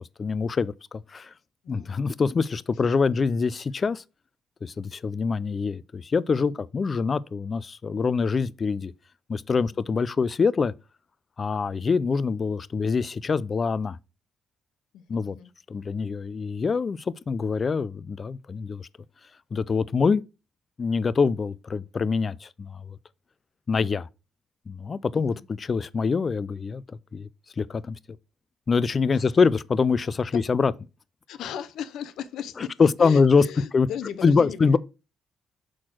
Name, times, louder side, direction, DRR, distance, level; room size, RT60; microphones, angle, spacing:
voice 1, 0.2-1.3 1.7-4.0 4.6-8.9 9.3-10.7 11.4-14.0 15.1-15.4 15.7-18.9 19.5-20.2 20.8-23.0 23.7-24.1 24.7-26.8 27.1-27.3 27.6-28.0 28.7-30.7 32.8-33.4 33.7-33.9 34.2-34.8, left 5 dB, 40° left, 0.4 m, -24 dB
voice 2, 14.9-15.5 25.1-25.4 29.1-29.3 30.3-30.4 31.3-34.8, left 9 dB, 80° left, 0.7 m, -37 dB
6.1 x 4.3 x 4.5 m
cardioid pair, 90°, 0 cm